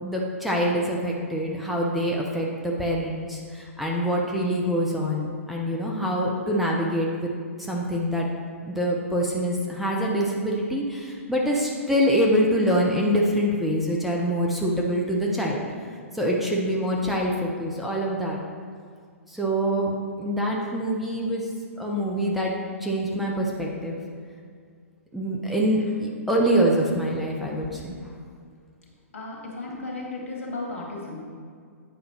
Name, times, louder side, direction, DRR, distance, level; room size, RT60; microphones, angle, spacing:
voice 1, 0.0-7.3 7.7-8.3 8.7-15.6 16.1-18.4 19.3-21.4 21.8-22.5 22.8-24.0 25.1-28.0 29.7-29.8 30.2-30.3, equal, ahead, -3 dB, 0.8 m, -25 dB
voice 2, 29.1-31.3, left 2 dB, 65° left, -2 dB, 2.1 m, -35 dB
8.7 x 5.3 x 4.5 m, 2.1 s
figure-of-eight pair, 115°, 8 cm